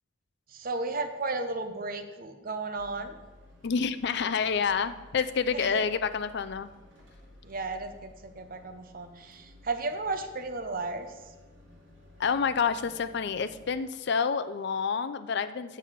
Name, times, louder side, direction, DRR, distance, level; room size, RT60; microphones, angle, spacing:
voice 1, 0.5-3.1 5.5-5.9 7.4-11.1, right 3 dB, 50° right, 7 dB, 0.8 m, -34 dB
sound 1, 2.8-13.8, left 1 dB, 75° right, 2.0 m, -55 dB
voice 2, 3.6-6.7 12.2-15.8, left 6 dB, 60° left, 11 dB, 0.5 m, -28 dB
7.5 x 6.7 x 5.1 m, 1.2 s
head